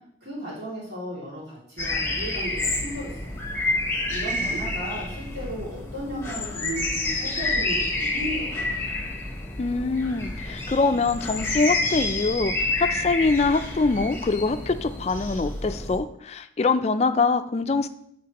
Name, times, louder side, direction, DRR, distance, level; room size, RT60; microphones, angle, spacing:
voice 1, 0.2-3.4 4.1-8.7, equal, 70° right, -7 dB, 2.5 m, -35 dB
sound 1, 1.8-16.0, left 2 dB, 15° left, 0.9 m, -29 dB
voice 2, 9.6-17.9, left 4 dB, 35° left, 11 dB, 0.3 m, -24 dB
9.3 x 3.9 x 2.9 m, 0.72 s
head